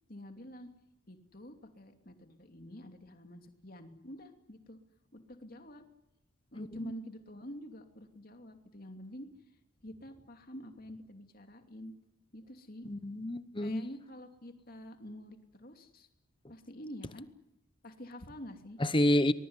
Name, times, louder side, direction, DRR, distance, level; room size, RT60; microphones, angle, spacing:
voice 1, 0.1-0.7 1.1-4.8 5.1-5.9 6.5-9.3 9.8-11.9 12.3-12.9 13.6-16.1 16.5-17.3 17.8-18.8, equal, 40° left, 6 dB, 2.8 m, -48 dB
voice 2, 6.6-6.9 12.8-13.8 18.8-19.3, left 1 dB, 25° left, 13 dB, 0.9 m, -29 dB
24.0 x 21.0 x 9.7 m, 0.85 s
head